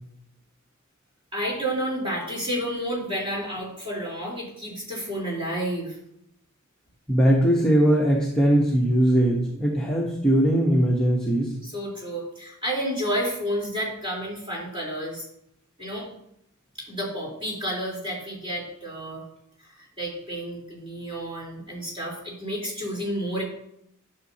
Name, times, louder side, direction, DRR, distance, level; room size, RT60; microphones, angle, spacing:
voice 1, 1.3-6.0 11.6-15.3 15.8-16.1 16.8-19.2 19.6-23.4, equal, 25° right, -4 dB, 3.7 m, -30 dB
voice 2, 7.1-11.5, right 1 dB, 5° left, -4 dB, 1.0 m, -20 dB
11.0 x 6.5 x 2.8 m, 0.76 s
head